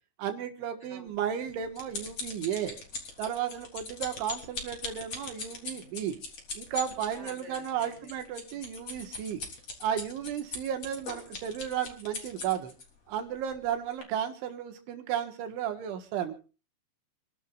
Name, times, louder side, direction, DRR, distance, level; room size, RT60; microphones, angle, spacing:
voice 1, 0.2-2.8 3.2-6.2 6.6-9.4 9.8-12.7 13.1-16.4, right 9 dB, 75° right, 6 dB, 4.0 m, -33 dB
voice 2, 0.8-1.2 7.1-8.2, equal, 10° left, 0 dB, 3.1 m, -50 dB
sound 1, 1.2-12.8 13.5-13.7 14.0-14.1, left 3 dB, 35° left, 3.8 m, -40 dB
28.5 x 12.0 x 2.5 m, 0.35 s
omnidirectional pair, 5.5 m